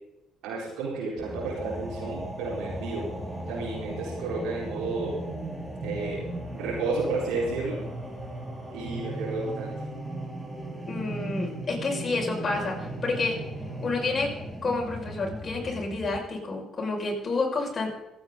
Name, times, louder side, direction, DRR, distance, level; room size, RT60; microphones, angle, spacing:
voice 1, 0.4-3.1 3.5-5.2 5.8-6.2 6.5-7.8 8.7-9.7, right 3 dB, 70° right, -9 dB, 4.8 m, -31 dB
sound 1, 1.2-16.2, right 1 dB, 10° right, 4.8 m, -36 dB
voice 2, 10.9-13.4 13.8-14.3 14.6-17.9, left 3 dB, 40° left, -1 dB, 6.0 m, -29 dB
27.0 x 9.0 x 4.0 m, 0.97 s
hypercardioid pair, 50°, 0 cm